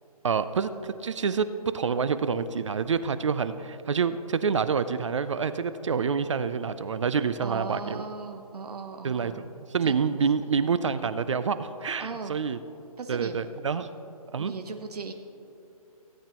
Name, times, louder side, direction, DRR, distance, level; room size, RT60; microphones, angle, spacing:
voice 1, 0.2-1.5 1.7-8.0 9.0-12.6 13.1-13.9 14.3-14.5, right 6 dB, 50° right, 13 dB, 0.4 m, -27 dB
voice 2, 7.4-9.4 9.8-10.0 12.0-12.3 13.0-13.4 14.4-15.1, right 4 dB, 85° right, 5 dB, 1.0 m, -37 dB
16.5 x 8.7 x 3.0 m, 2.6 s
hypercardioid pair, 170°, 19 cm